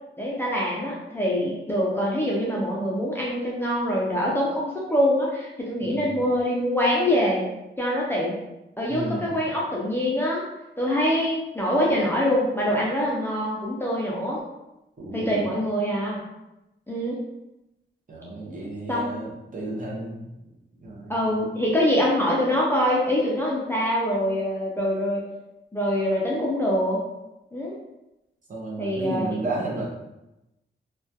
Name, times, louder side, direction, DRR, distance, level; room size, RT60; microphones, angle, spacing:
voice 1, 0.2-7.4 7.8-8.4 8.8-10.4 10.8-14.4 15.1-16.2 16.9-17.2 18.9-19.2 21.1-25.2 25.7-27.0 27.5-27.8 28.8-29.3, equal, 10° left, -5 dB, 0.3 m, -24 dB
voice 2, 5.8-6.1 8.9-9.3 15.0-15.5 18.1-20.3 20.8-21.4 28.5-29.9, right 2 dB, 40° right, -4 dB, 0.6 m, -32 dB
2.3 x 2.2 x 2.6 m, 0.94 s
wide cardioid pair, 170°, 20 cm